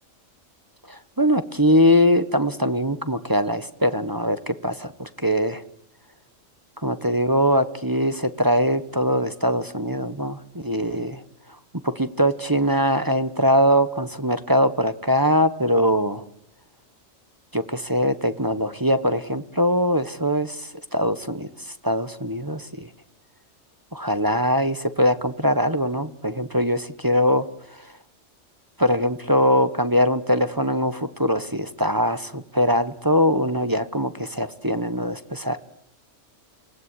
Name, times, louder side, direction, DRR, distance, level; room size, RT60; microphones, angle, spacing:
voice 1, 0.9-5.6 6.8-11.2 11.8-16.2 17.5-21.5 21.8-22.9 23.9-27.4 28.8-35.6, equal, 15° right, 11 dB, 1.2 m, -22 dB
28.0 x 19.0 x 10.0 m, 0.73 s
omnidirectional pair, 1.3 m